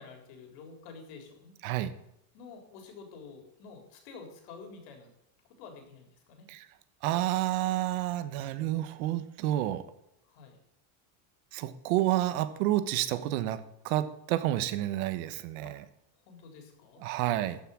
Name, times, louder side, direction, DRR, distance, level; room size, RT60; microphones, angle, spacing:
voice 1, 0.0-1.6 2.3-5.1 5.5-6.5 10.2-10.6 15.6-15.7 16.2-17.0, left 4 dB, 60° left, 4 dB, 3.9 m, -49 dB
voice 2, 7.0-9.8 11.5-15.8 17.0-17.6, right 14 dB, 65° right, 13 dB, 1.2 m, -30 dB
13.5 x 6.2 x 8.4 m, 0.81 s
cardioid pair, 165°, 46 cm